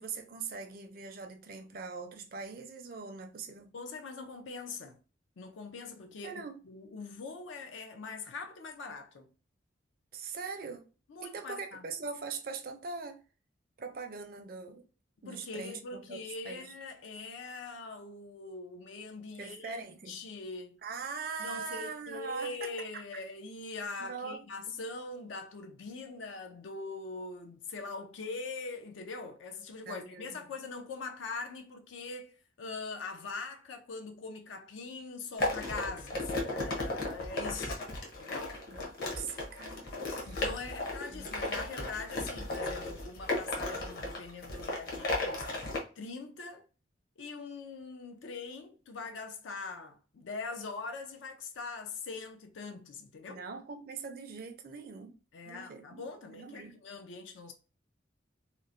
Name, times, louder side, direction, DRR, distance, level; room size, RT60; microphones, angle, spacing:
voice 1, 0.0-3.7 6.2-6.6 10.1-10.9 11.2-13.2 13.8-14.8 15.2-16.7 19.4-20.2 20.8-22.7 24.0-24.4 29.9-30.4 38.7-39.9 40.2-40.4 41.1-41.3 53.3-55.2 55.4-56.8, right 5 dB, 50° right, 0.4 m, -42 dB
voice 2, 3.7-5.0 5.4-9.3 11.1-11.8 15.3-20.8 21.4-37.8 38.2-38.6 40.2-46.6 47.2-53.4 55.3-57.5, left 3 dB, 75° left, 0.4 m, -42 dB
sound 1, 35.4-45.8, left 2 dB, 50° left, 0.8 m, -35 dB
2.9 x 2.0 x 2.5 m
head